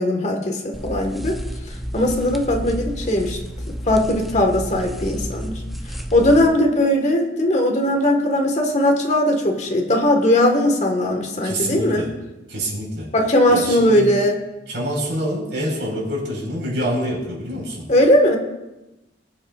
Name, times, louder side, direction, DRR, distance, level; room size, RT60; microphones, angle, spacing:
voice 1, 0.0-1.4 1.9-3.4 3.7-5.6 6.1-12.0 13.1-14.4 17.9-18.4, left 1 dB, 40° left, 2 dB, 1.6 m, -19 dB
sound 1, 0.7-6.5, equal, ahead, 0.6 m, -31 dB
voice 2, 11.4-12.1 12.5-13.1 13.5-14.1 14.7-17.8, equal, 80° right, -3 dB, 4.7 m, -26 dB
20.5 x 8.7 x 2.5 m, 1.0 s
head